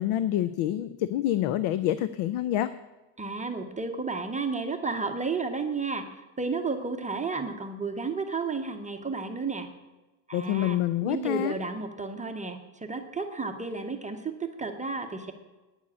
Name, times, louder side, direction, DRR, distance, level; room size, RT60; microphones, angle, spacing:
voice 1, 0.0-2.7 10.3-11.5, left 12 dB, 75° left, 14 dB, 0.6 m, -27 dB
voice 2, 3.2-9.7 10.3-10.8 11.0-15.3, right 4 dB, 15° right, 4 dB, 0.6 m, -32 dB
9.7 x 7.3 x 8.3 m, 1.1 s
cardioid pair, 165°, 48 cm